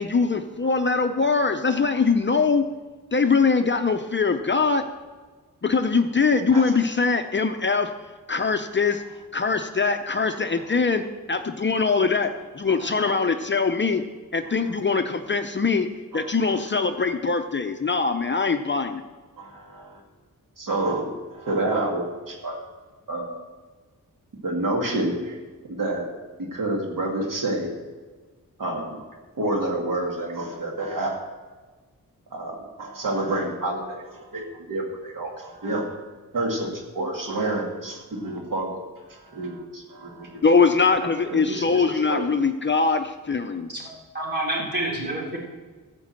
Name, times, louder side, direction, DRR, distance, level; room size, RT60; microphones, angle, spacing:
voice 1, 0.0-2.6 3.1-4.8 5.6-7.9 8.3-9.0 9.3-11.0 11.3-14.0 14.3-15.9 16.1-19.0 40.4-43.7, left 4 dB, 35° left, 7 dB, 0.6 m, -22 dB
voice 2, 12.7-13.1 16.1-16.6 19.4-20.0 20.6-22.6 23.1-23.4 24.4-25.4 25.7-26.0 26.4-27.7 28.6-29.0 29.4-31.3 32.3-36.0 36.3-40.4 41.0-42.2, right 2 dB, 70° right, 0 dB, 2.0 m, -29 dB
voice 3, 43.7-45.4, right 1 dB, 30° right, -4 dB, 3.9 m, -28 dB
14.0 x 5.3 x 7.6 m, 1.4 s
wide cardioid pair, 105°, 34 cm